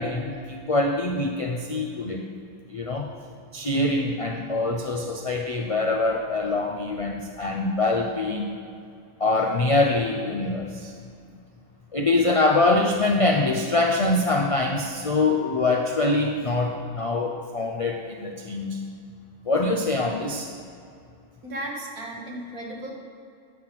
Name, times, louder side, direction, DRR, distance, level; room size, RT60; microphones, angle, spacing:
voice 1, 0.0-2.3 2.7-3.1 3.5-8.5 9.2-10.9 11.9-18.8 19.5-20.5, left 2 dB, 55° left, 1 dB, 0.3 m, -24 dB
voice 2, 21.4-23.0, right 1 dB, 75° right, -1 dB, 1.8 m, -35 dB
9.3 x 5.9 x 5.8 m, 2.4 s
omnidirectional pair, 1.5 m